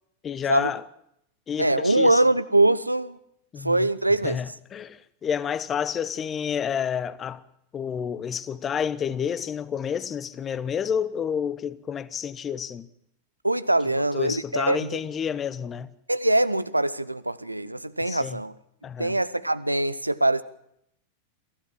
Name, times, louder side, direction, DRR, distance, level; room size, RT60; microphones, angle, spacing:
voice 1, 0.2-0.8 1.5-2.2 3.5-3.9 4.2-7.4 7.7-12.9 14.0-15.9 18.1-18.4 18.8-19.2, left 7 dB, 25° left, 1.0 m, -30 dB
voice 2, 1.6-3.2 3.6-4.4 13.4-15.0 16.1-18.5 19.0-20.4, right 2 dB, 85° right, 0.8 m, -23 dB
23.5 x 15.0 x 7.3 m
figure-of-eight pair, 90°, 0 cm